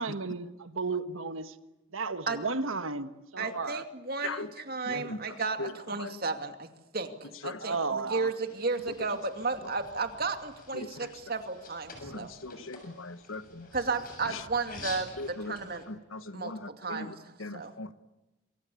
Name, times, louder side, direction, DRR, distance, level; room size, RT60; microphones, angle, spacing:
voice 1, 0.0-1.5 1.9-3.8 7.6-8.3, right 4 dB, 85° right, 1.5 m, -33 dB
voice 2, 3.4-6.7 6.9-12.3 13.7-15.1 15.5-15.8 16.3-17.1 17.5-17.7, right 4 dB, 50° right, 2.4 m, -33 dB
voice 3, 4.8-6.1 7.4-7.7 9.6-9.7 10.7-11.1 12.0-13.7 14.2-14.4 15.2-15.6 15.9-17.9, left 2 dB, 85° left, 1.4 m, -40 dB
sound 1, 8.5-15.9, left 3 dB, 45° left, 7.4 m, -48 dB
28.0 x 22.5 x 8.5 m
head